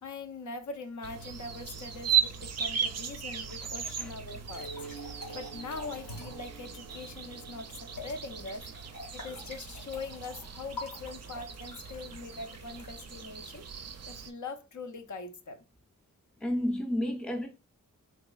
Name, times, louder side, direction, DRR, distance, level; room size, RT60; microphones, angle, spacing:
voice 1, 0.0-8.7 9.1-13.7 14.1-15.6, left 3 dB, 65° left, 0.6 m, -42 dB
sound 1, 1.0-14.3, right 8 dB, 55° right, 0.4 m, -37 dB
sound 2, 4.3-6.5 7.9-14.1, left 2 dB, 85° left, 1.6 m, -47 dB
sound 3, 4.5-9.5, right 3 dB, 35° left, 0.7 m, -49 dB
voice 2, 16.4-17.5, left 1 dB, 5° left, 0.5 m, -31 dB
3.8 x 3.0 x 2.3 m
wide cardioid pair, 75°, 33 cm